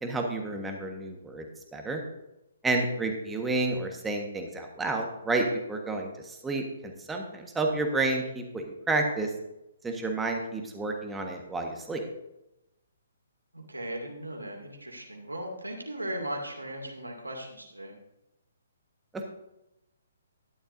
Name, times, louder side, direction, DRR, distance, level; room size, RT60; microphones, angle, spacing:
voice 1, 0.0-1.5 1.7-2.0 2.6-9.3 9.8-12.0, right 2 dB, 10° right, 2 dB, 1.4 m, -30 dB
voice 2, 13.5-18.0, right 1 dB, 85° right, 0 dB, 2.6 m, -37 dB
12.5 x 11.0 x 2.7 m, 0.91 s
figure-of-eight pair, 130°, 0 cm